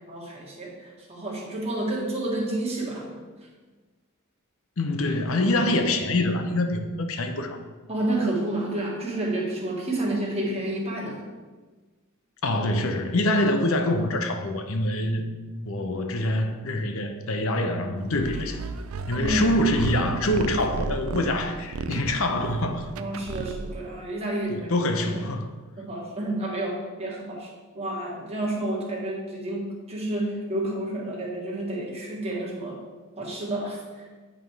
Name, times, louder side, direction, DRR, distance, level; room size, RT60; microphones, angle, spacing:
voice 1, 0.1-3.2 7.9-11.2 19.1-19.5 22.9-24.7 25.1-25.2 25.8-32.8 33.2-34.1, right 1 dB, 30° right, -3 dB, 1.6 m, -30 dB
voice 2, 4.8-7.6 12.4-15.2 15.7-18.6 19.1-22.9 23.4-23.5 24.5-25.5, left 1 dB, 70° left, 5 dB, 0.7 m, -25 dB
sound 1, 18.1-23.9, right 4 dB, 70° right, 0.4 m, -34 dB
9.5 x 3.6 x 4.7 m, 1.3 s
head